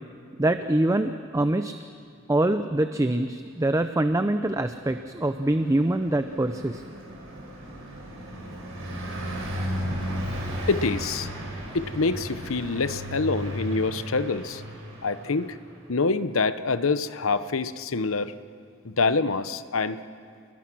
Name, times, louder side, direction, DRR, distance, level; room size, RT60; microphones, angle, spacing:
voice 1, 0.4-1.7 2.3-6.8, right 1 dB, 15° right, 9 dB, 0.5 m, -24 dB
Car passing by, 4.7-15.7, equal, 70° right, 5.9 m, -35 dB
voice 2, 10.7-11.3 11.7-14.6 15.0-15.6 15.9-18.3 18.8-20.0, left 4 dB, 80° left, 13 dB, 0.8 m, -26 dB
29.0 x 20.5 x 6.1 m, 2.2 s
head